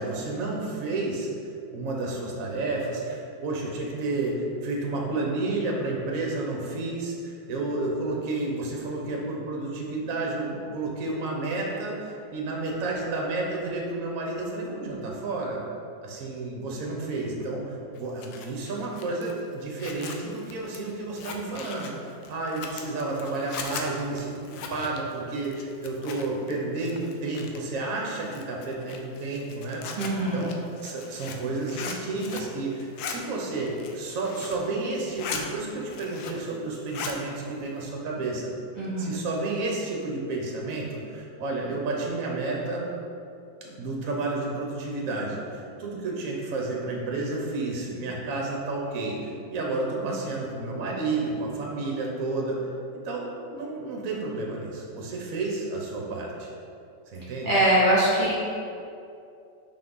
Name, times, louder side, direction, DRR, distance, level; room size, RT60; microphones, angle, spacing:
voice 1, 0.0-15.6 16.0-29.8 30.2-30.5 30.8-38.5 39.0-42.9 43.6-52.6 52.9-56.5 57.1-57.5, right 2 dB, 55° right, -1 dB, 1.0 m, -31 dB
Zipper (clothing), 18.0-26.5 26.8-27.8 28.2-32.5 32.8-33.2 33.6-34.6 35.0-35.4 35.8-36.5 36.8-37.2, left 6 dB, 80° left, 1.3 m, -39 dB
voice 2, 30.0-30.5 38.8-39.2 50.0-50.2 57.4-58.3, right 1 dB, 25° right, -9 dB, 1.5 m, -23 dB
5.8 x 4.4 x 3.9 m, 2.5 s
omnidirectional pair, 2.1 m